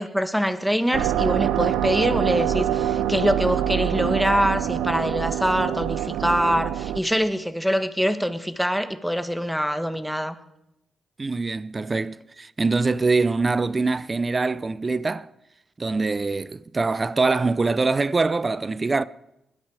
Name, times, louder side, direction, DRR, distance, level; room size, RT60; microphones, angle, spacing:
voice 1, 0.0-10.3, equal, ahead, 1.4 m, -24 dB
sound 1, 0.9-7.0, right 11 dB, 90° right, 0.5 m, -25 dB
voice 2, 11.2-15.3 15.8-19.0, right 3 dB, 35° right, 0.6 m, -24 dB
20.5 x 12.0 x 4.9 m
supercardioid pair, 50°, 0 cm